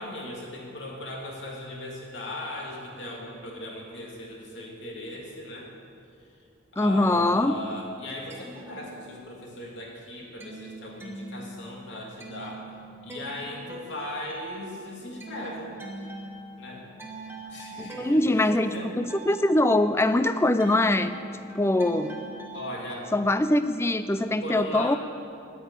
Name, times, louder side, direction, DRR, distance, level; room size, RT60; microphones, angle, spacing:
voice 1, 0.0-5.7 6.7-12.6 13.0-15.7 16.6-16.9 17.5-18.9 22.5-23.1 24.4-25.0, left 1 dB, 60° left, -2 dB, 2.6 m, -38 dB
voice 2, 6.8-7.6 17.8-21.1 21.5-22.1 23.1-25.0, left 1 dB, 15° left, 11 dB, 0.4 m, -23 dB
sound 1, 8.2-9.5 9.9-22.7, right 2 dB, 10° right, 1.2 m, -43 dB
10.0 x 9.0 x 8.8 m, 2.5 s
head